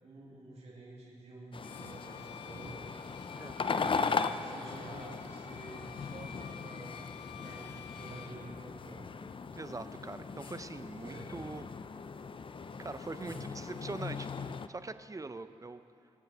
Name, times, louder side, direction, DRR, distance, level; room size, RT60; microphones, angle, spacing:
voice 1, 0.0-3.0 3.7-7.0 7.3-9.1 11.0-11.3 13.2-13.5, right 2 dB, 65° right, -5 dB, 2.6 m, -49 dB
sound 1, 1.5-14.7, left 5 dB, 45° left, 0.5 m, -38 dB
Bowed string instrument, 1.6-8.4, left 8 dB, 85° left, 0.9 m, -52 dB
voice 2, 9.5-11.7 12.8-15.8, right 3 dB, 30° right, 11 dB, 0.7 m, -43 dB
21.5 x 9.1 x 4.2 m, 2.5 s
cardioid pair, 50°, 12 cm